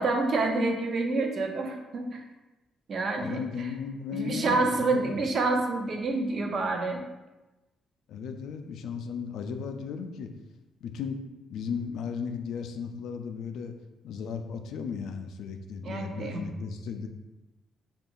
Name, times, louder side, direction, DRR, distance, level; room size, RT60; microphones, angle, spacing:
voice 1, 0.0-2.2 2.9-3.4 4.1-7.0 15.8-16.4, right 3 dB, 55° right, 3 dB, 0.5 m, -28 dB
voice 2, 3.2-5.2 8.1-10.3 10.8-11.2 11.5-13.7 14.0-17.1, left 6 dB, 80° left, 6 dB, 0.3 m, -35 dB
2.9 x 2.4 x 3.8 m, 1.1 s
cardioid pair, 90°, 0 cm